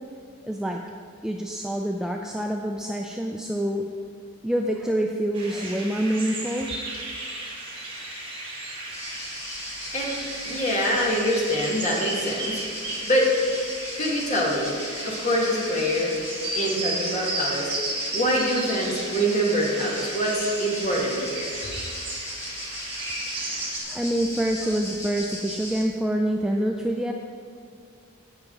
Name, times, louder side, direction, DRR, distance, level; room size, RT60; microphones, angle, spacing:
voice 1, 0.4-0.8 1.2-3.9 4.4-6.7 23.8-27.1, right 1 dB, 5° right, 1 dB, 0.3 m, -26 dB
sound 1, 5.3-23.8, right 2 dB, 25° right, 1.9 m, -35 dB
sound 2, 8.9-25.8, left 1 dB, 15° left, 1.6 m, -37 dB
voice 2, 10.5-12.6 13.1-13.5 14.0-14.8 15.0-16.2 16.5-17.7 18.1-21.5, equal, 30° left, -3 dB, 1.8 m, -24 dB
16.5 x 5.9 x 3.9 m, 2.2 s
head